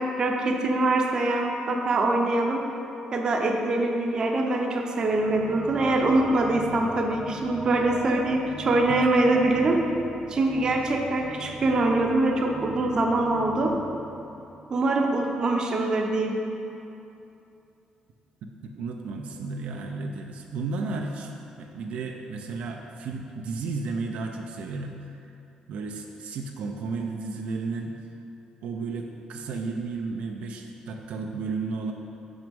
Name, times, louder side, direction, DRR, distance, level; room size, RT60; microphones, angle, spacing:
voice 1, 0.0-2.6 3.1-9.8 10.3-13.7 14.7-16.4, right 2 dB, 35° right, 1 dB, 0.7 m, -24 dB
sound 1, 5.0-15.9, right 2 dB, 10° right, 0.3 m, -41 dB
voice 2, 18.4-21.3 21.6-25.4 25.7-28.0 28.6-31.9, right 4 dB, 70° right, 2 dB, 0.5 m, -33 dB
6.2 x 5.9 x 5.2 m, 2.8 s
cardioid pair, 165°, 2 cm